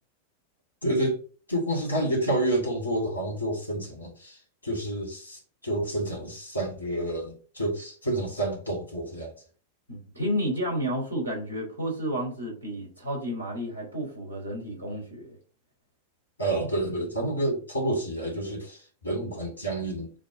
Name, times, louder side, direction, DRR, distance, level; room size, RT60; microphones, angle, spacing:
voice 1, 0.8-1.2 1.5-9.3 16.4-20.1, right 1 dB, 80° left, 2.2 m, -29 dB
voice 2, 9.9-15.4, equal, 85° right, 3.1 m, -31 dB
7.3 x 2.5 x 5.1 m
figure-of-eight pair, 90°, 0 cm